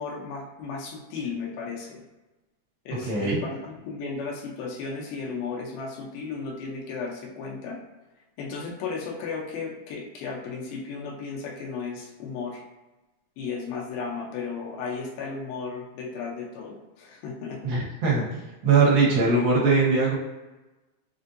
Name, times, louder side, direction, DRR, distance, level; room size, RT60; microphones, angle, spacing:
voice 1, 0.0-2.0 2.9-7.8 8.4-12.6 13.4-17.7, left 4 dB, 85° left, -1 dB, 2.7 m, -34 dB
voice 2, 3.1-3.4 17.6-20.1, right 4 dB, 80° right, -6 dB, 3.2 m, -21 dB
6.6 x 2.6 x 2.6 m, 1.1 s
omnidirectional pair, 4.2 m